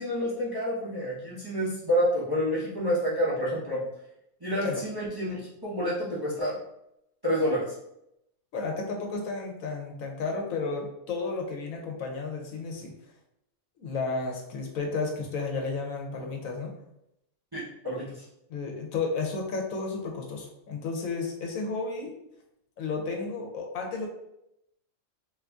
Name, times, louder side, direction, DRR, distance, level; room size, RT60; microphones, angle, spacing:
voice 1, 0.0-3.8 4.4-6.6 7.2-7.7 17.5-18.2, equal, 35° right, -7 dB, 0.3 m, -28 dB
voice 2, 8.5-12.9 13.8-16.7 18.5-22.1 22.8-24.1, left 4 dB, 75° left, 2 dB, 1.1 m, -32 dB
2.7 x 2.5 x 3.4 m, 0.82 s
omnidirectional pair, 1.5 m